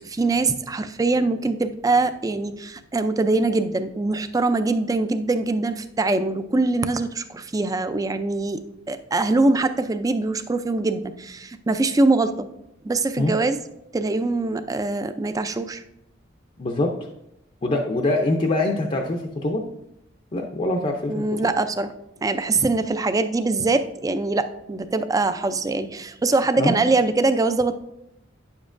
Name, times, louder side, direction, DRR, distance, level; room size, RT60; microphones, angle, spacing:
voice 1, 0.0-8.6 8.9-12.5 12.8-13.6 13.9-15.8 21.1-21.9 22.2-27.8, right 3 dB, 20° right, 10 dB, 0.4 m, -23 dB
voice 2, 16.6-17.0 17.6-19.6 20.3-21.2 26.6-26.8, left 2 dB, 30° left, 2 dB, 0.6 m, -23 dB
9.4 x 7.2 x 2.5 m, 0.85 s
head